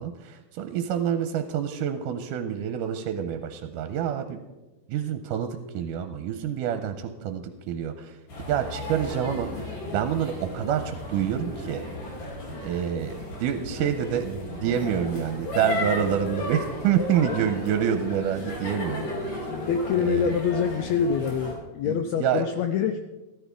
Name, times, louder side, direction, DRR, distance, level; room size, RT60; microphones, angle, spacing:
voice 1, 0.0-4.4 4.9-8.2 8.5-11.8 12.6-19.5 20.0-20.3 21.9-22.5, right 9 dB, 85° right, 8 dB, 2.2 m, -27 dB
sound 1, 8.3-21.5, left 2 dB, 70° left, 4.4 m, -34 dB
voice 2, 19.7-23.0, left 7 dB, 90° left, 8 dB, 1.6 m, -25 dB
14.0 x 13.5 x 3.5 m, 1.1 s
omnidirectional pair, 3.8 m